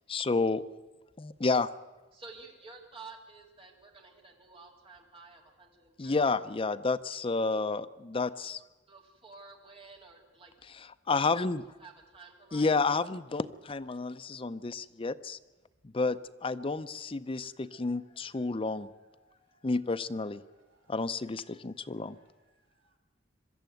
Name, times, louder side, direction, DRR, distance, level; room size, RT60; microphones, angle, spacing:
voice 1, 0.1-0.6 1.2-1.7 6.0-8.6 11.1-11.6 12.5-15.4 15.9-18.9 19.6-20.4 20.9-22.2, left 3 dB, 30° left, 12 dB, 0.6 m, -30 dB
voice 2, 2.1-6.4 8.9-10.5 11.7-12.9, right 4 dB, 30° right, 1 dB, 2.6 m, -51 dB
voice 3, 18.4-19.7 20.5-20.9 22.1-22.3 22.6-22.9, right 1 dB, 90° right, 3 dB, 4.3 m, -70 dB
22.5 x 13.0 x 9.2 m, 1.2 s
head